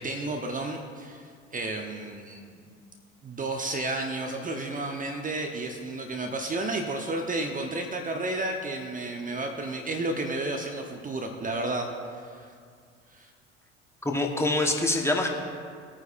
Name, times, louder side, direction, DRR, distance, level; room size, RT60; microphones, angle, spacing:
voice 1, 0.0-2.6 3.2-12.5 13.1-13.3, right 2 dB, 20° right, 3 dB, 1.0 m, -32 dB
voice 2, 14.0-15.3, left 2 dB, 5° left, 1 dB, 1.3 m, -25 dB
19.5 x 9.3 x 2.6 m, 2.2 s
figure-of-eight pair, 65°, 37 cm